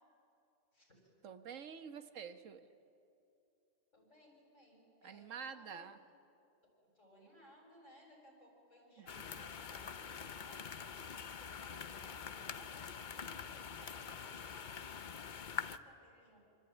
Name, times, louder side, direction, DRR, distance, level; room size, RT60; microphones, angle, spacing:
voice 1, 0.7-1.1 3.9-5.9 6.6-16.4, equal, 75° left, 0 dB, 7.0 m, -63 dB
voice 2, 1.2-2.7 5.0-6.0 9.0-9.4, right 6 dB, 85° right, 9 dB, 1.5 m, -48 dB
sound 1, 9.1-15.8, left 6 dB, 45° left, 0.8 m, -45 dB
26.0 x 24.5 x 9.0 m, 2.7 s
omnidirectional pair, 1.3 m